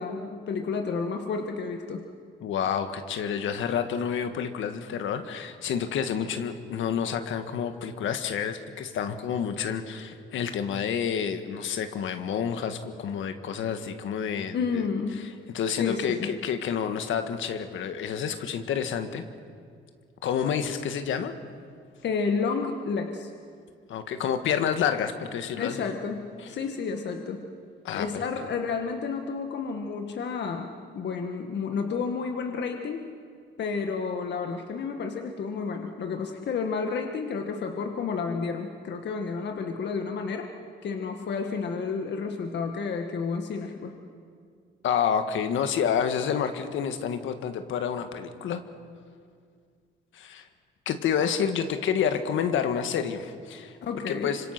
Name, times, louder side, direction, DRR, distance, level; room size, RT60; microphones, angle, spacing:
voice 1, 0.0-2.0 14.5-15.3 15.7-16.3 22.0-23.3 25.6-27.4 27.9-33.1 33.6-40.5 40.8-43.9 53.8-54.3, left 5 dB, 60° left, 4 dB, 1.7 m, -31 dB
voice 2, 2.4-14.6 15.5-19.2 20.2-21.3 23.9-25.9 27.8-28.1 44.8-48.6 50.1-50.5 50.8-53.7 54.1-54.5, left 7 dB, 75° left, 8 dB, 1.7 m, -29 dB
25.5 x 25.5 x 5.9 m, 2.2 s
cardioid pair, 90°, 20 cm